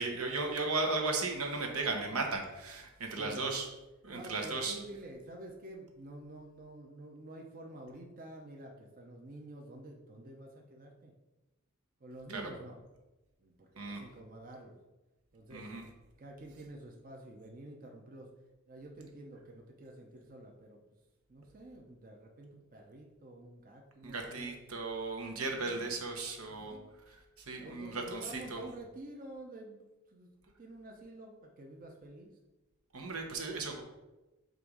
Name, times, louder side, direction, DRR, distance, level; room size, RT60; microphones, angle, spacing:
voice 1, 0.0-3.7 4.0-4.8 12.3-12.5 13.8-14.0 15.5-15.8 24.0-26.8 27.1-28.6 32.9-33.8, right 3 dB, 75° right, 3 dB, 1.0 m, -36 dB
voice 2, 3.2-3.6 4.1-11.1 12.0-12.8 13.4-14.8 15.3-15.7 16.2-18.3 18.7-20.8 21.3-24.5 25.3-25.9 26.4-26.9 27.6-29.8 30.1-30.3 30.6-32.3, right 1 dB, 40° right, 0 dB, 0.7 m, -49 dB
7.7 x 2.6 x 5.0 m, 1.1 s
head